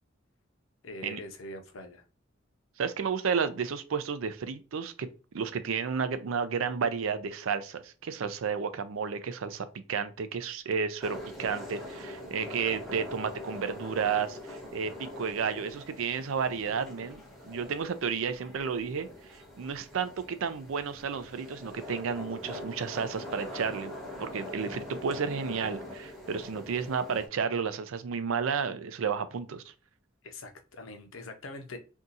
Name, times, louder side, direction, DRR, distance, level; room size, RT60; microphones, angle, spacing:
voice 1, 0.8-2.0 30.2-31.8, left 2 dB, 75° left, 5 dB, 0.7 m, -43 dB
voice 2, 2.8-5.1 5.3-23.9 24.2-29.7, right 6 dB, 80° right, 11 dB, 0.4 m, -32 dB
sound 1, 11.0-27.3, left 1 dB, ahead, 0.8 m, -43 dB
2.7 x 2.4 x 3.9 m, 0.34 s
head